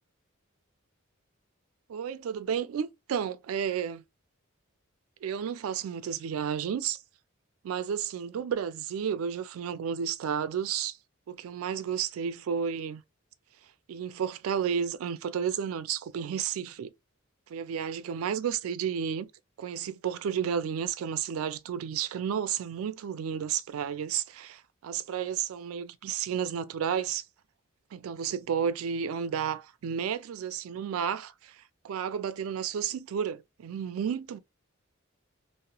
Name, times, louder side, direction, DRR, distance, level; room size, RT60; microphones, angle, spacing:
voice 1, 1.9-4.0 5.2-7.0 7.6-11.0 11.3-13.0 13.9-16.9 17.5-19.3 19.6-27.2 27.9-34.4, right 8 dB, 85° right, 0.3 m, -32 dB
2.9 x 2.0 x 2.3 m
head